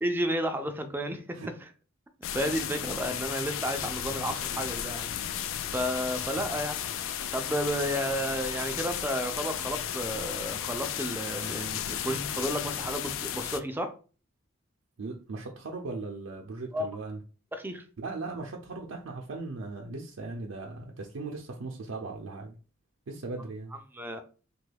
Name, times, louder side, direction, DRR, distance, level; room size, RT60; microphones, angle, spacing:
voice 1, 0.0-1.7 2.3-5.1 5.7-13.9 16.7-16.9 17.5-17.8 23.9-24.2, equal, 10° right, 0.3 m, -32 dB
sound 1, 2.2-13.6, left 10 dB, 80° left, 0.3 m, -34 dB
voice 2, 15.0-17.2 18.0-22.6 23.1-23.7, right 3 dB, 75° right, 0.4 m, -38 dB
3.0 x 2.2 x 3.3 m
head